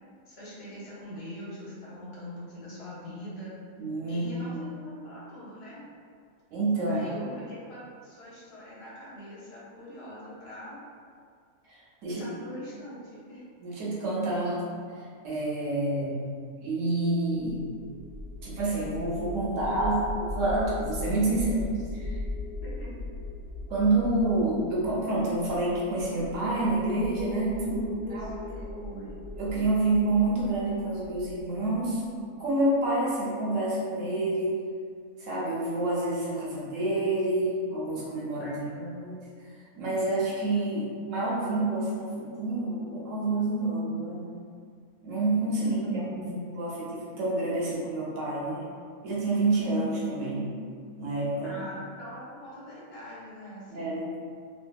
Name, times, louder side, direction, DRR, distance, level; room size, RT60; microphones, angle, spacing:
voice 1, 0.3-3.5 4.1-5.8 6.9-10.8 12.1-13.4 22.6-22.9 27.7-29.2 38.4-38.8 45.6-46.4 51.4-54.0, equal, 55° left, -8 dB, 0.9 m, -41 dB
voice 2, 3.8-4.7 6.5-7.1 11.7-12.2 13.6-14.6 15.2-16.2 16.6-17.6 18.4-21.6 21.9-22.2 23.7-27.8 29.4-32.0 32.4-34.6 35.2-39.2 39.8-44.3 45.0-45.8 46.5-48.6 49.0-50.5 51.0-51.5 53.7-54.0, right 2 dB, 65° right, -6 dB, 1.0 m, -28 dB
sound 1, 17.6-32.5, left 2 dB, 80° right, 1.2 m, -39 dB
2.7 x 2.4 x 2.2 m, 2.1 s
omnidirectional pair, 1.5 m